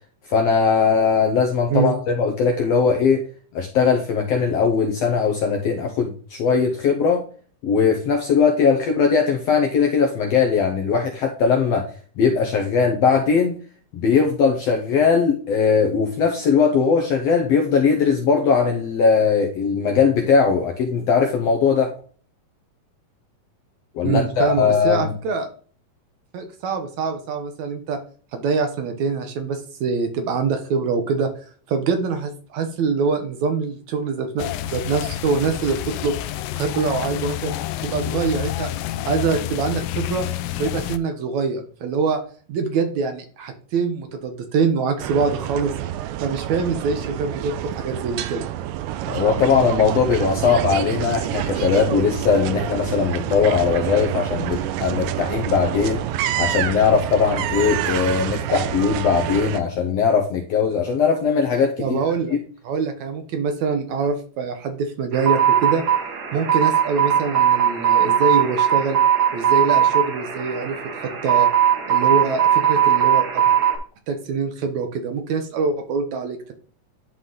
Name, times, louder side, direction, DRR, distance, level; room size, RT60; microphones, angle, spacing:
voice 1, 0.3-3.2 3.5-7.2 7.6-11.9 12.2-13.6 13.9-21.9 23.9-25.1 49.1-56.0 56.4-62.0, left 6 dB, 70° left, 2 dB, 1.6 m, -19 dB
voice 2, 24.0-25.5 26.3-28.0 28.3-31.3 31.7-35.8 36.0-36.2 36.5-37.6 37.8-38.7 39.1-40.3 40.6-42.2 42.5-45.7 46.2-48.5 50.4-50.5 61.8-62.4 62.6-65.8 66.3-69.0 69.3-70.8 71.0-71.5 71.9-73.5 74.1-76.5, right 5 dB, 70° right, 6 dB, 2.1 m, -24 dB
sound 1, 34.4-41.0, left 13 dB, 85° left, 2.2 m, -29 dB
sound 2, 45.0-59.6, right 12 dB, 85° right, 2.2 m, -27 dB
sound 3, 65.1-73.8, right 9 dB, 50° right, 1.5 m, -19 dB
11.0 x 4.0 x 3.8 m, 0.42 s
omnidirectional pair, 3.8 m